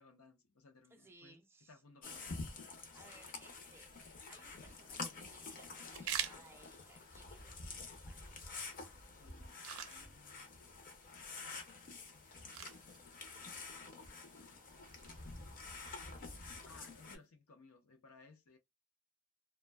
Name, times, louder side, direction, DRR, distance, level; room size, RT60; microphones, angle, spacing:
voice 1, 0.0-1.4 1.7-2.4 9.2-10.5 16.6-18.6, left 3 dB, 85° left, 0.7 m, -62 dB
voice 2, 0.9-1.8 2.8-3.9 4.3-8.4, right 2 dB, 10° right, 0.4 m, -63 dB
Soundscape (sounds only), 2.0-17.2, left 3 dB, 40° left, 0.6 m, -49 dB
sound 1, 4.2-17.3, right 9 dB, 75° right, 0.5 m, -50 dB
2.5 x 2.2 x 2.2 m
head